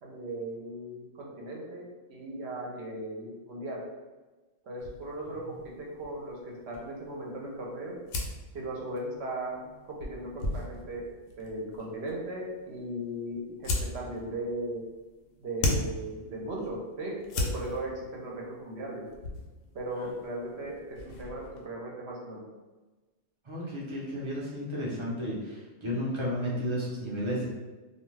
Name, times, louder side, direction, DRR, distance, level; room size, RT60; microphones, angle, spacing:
voice 1, 0.0-3.8 4.6-7.9 8.5-9.6 9.8-11.0 11.4-14.8 15.4-19.1 19.7-22.4, right 1 dB, 65° right, -2 dB, 0.9 m, -37 dB
sound 1, 4.8-21.7, left 2 dB, 85° left, 0.9 m, -38 dB
voice 2, 23.4-27.5, equal, 30° right, -6 dB, 0.6 m, -33 dB
2.5 x 2.2 x 3.2 m, 1.2 s
omnidirectional pair, 1.3 m